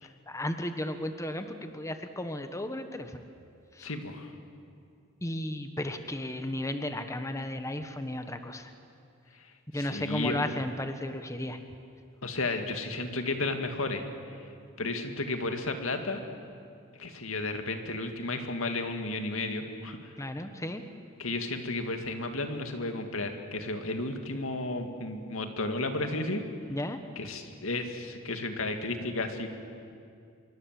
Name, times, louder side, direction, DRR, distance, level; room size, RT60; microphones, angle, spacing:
voice 1, 0.3-3.2 3.8-3.9 5.2-8.7 9.7-11.6 20.2-20.9 26.7-27.0, left 1 dB, 15° left, 8 dB, 1.2 m, -34 dB
voice 2, 3.8-4.3 9.4-10.4 12.2-14.1 14.8-16.2 17.0-20.1 21.2-26.4 27.2-29.5, left 2 dB, 75° left, 6 dB, 2.3 m, -33 dB
26.0 x 23.0 x 7.7 m, 2.4 s
head